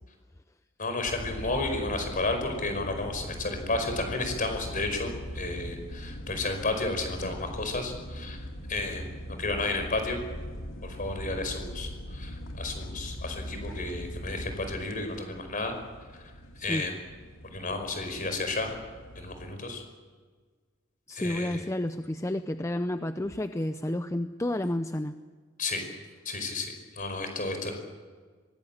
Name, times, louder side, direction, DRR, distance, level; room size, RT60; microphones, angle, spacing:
voice 1, 0.8-9.1 9.4-10.2 10.8-15.7 16.1-16.3 16.6-16.9 17.4-18.7 19.1-19.8 21.1-21.6 25.6-25.8 26.2-27.7, left 2 dB, 40° left, 6 dB, 5.2 m, -32 dB
sound 1, 1.0-19.5, equal, 80° left, 2.4 m, -40 dB
voice 2, 21.1-25.1, left 1 dB, 15° left, 9 dB, 0.6 m, -30 dB
24.0 x 19.0 x 8.8 m, 1.5 s
head